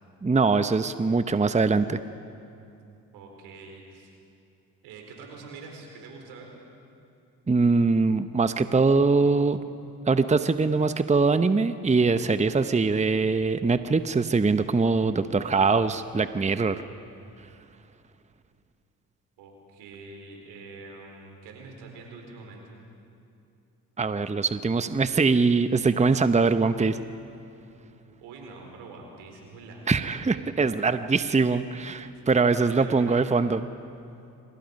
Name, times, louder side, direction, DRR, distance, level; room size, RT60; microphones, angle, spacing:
voice 1, 0.2-2.0 7.5-9.6 10.1-16.8 24.0-27.0 29.9-33.6, right 4 dB, 20° right, 11 dB, 0.9 m, -22 dB
voice 2, 3.1-4.1 4.8-6.6 19.4-22.6 28.2-30.3 32.5-33.3, right 3 dB, 85° right, 1 dB, 4.5 m, -45 dB
26.5 x 26.0 x 5.4 m, 2.7 s
supercardioid pair, 55°, 38 cm